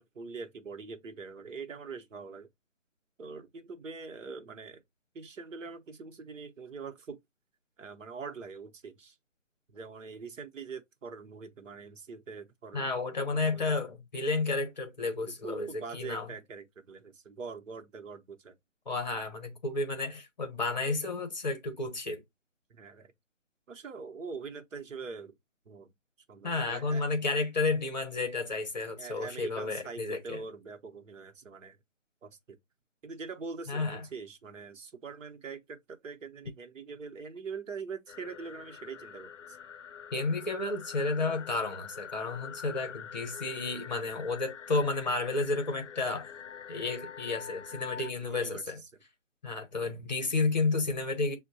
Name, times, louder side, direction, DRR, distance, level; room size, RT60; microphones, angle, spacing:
voice 1, 0.0-2.5 3.2-4.8 5.1-7.2 7.8-9.1 9.7-12.9 13.3-13.8 15.2-18.5 22.7-23.1 23.7-25.3 25.7-25.9 26.3-27.2 29.0-31.8 32.2-32.4 33.0-39.6 48.0-48.6, right 4 dB, 80° right, 0.8 m, -43 dB
voice 2, 12.7-16.3 18.9-22.2 26.4-30.4 33.7-34.0 40.1-46.3 46.7-48.8 49.4-51.3, left 3 dB, 35° left, 0.8 m, -31 dB
sound 1, 38.1-48.1, left 7 dB, 70° left, 0.5 m, -45 dB
6.0 x 2.2 x 2.6 m
hypercardioid pair, 175°, 38 cm